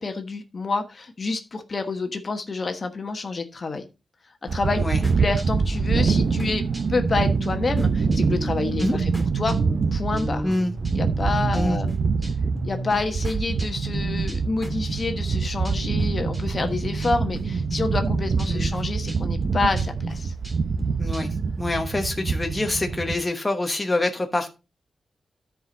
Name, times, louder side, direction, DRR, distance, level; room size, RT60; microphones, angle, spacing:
voice 1, 0.0-3.8 4.4-6.6 6.9-9.6 9.9-10.5 10.9-11.9 12.6-20.3, left 3 dB, 45° left, 1.2 m, -28 dB
sound 1, 4.5-23.2, right 5 dB, 60° right, 0.8 m, -25 dB
sound 2, 5.0-16.1 16.3-17.4 17.7-21.5, right 1 dB, 15° right, 2.4 m, -36 dB
voice 2, 21.0-24.5, left 2 dB, 20° left, 1.1 m, -26 dB
13.0 x 5.0 x 3.9 m
wide cardioid pair, 105°, 0 cm